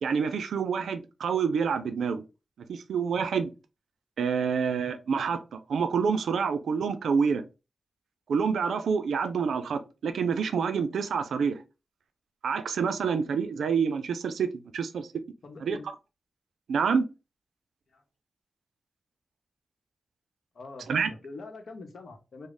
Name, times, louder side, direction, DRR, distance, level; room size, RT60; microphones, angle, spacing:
voice 1, 0.0-2.2 2.7-3.5 4.2-7.4 8.3-11.6 12.4-14.5 14.7-15.1 15.6-15.8 16.7-17.0 20.9-21.1, right 6 dB, 85° right, 0.3 m, -27 dB
voice 2, 15.4-15.9 17.9-18.0 20.5-22.5, left 3 dB, 75° left, 0.8 m, -43 dB
3.1 x 2.0 x 3.6 m
cardioid pair, 40°, 0 cm